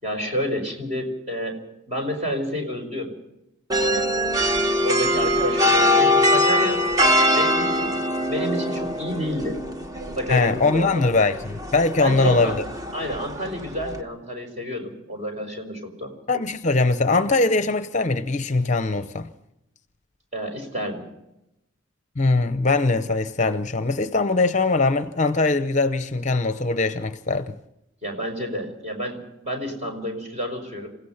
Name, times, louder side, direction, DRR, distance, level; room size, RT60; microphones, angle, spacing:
voice 1, 0.0-1.6 1.9-3.1 3.8-4.1 4.8-6.8 7.3-8.0 8.3-9.6 10.2-11.0 12.0-12.6 12.9-16.1 20.3-21.1 28.0-30.9, equal, 35° right, 4.8 m, -29 dB
sound 1, 3.7-14.0, left 1 dB, 15° right, 1.2 m, -23 dB
voice 2, 10.3-12.6 16.3-19.3 22.2-27.6, left 3 dB, 35° left, 0.7 m, -21 dB
28.0 x 16.5 x 5.8 m
head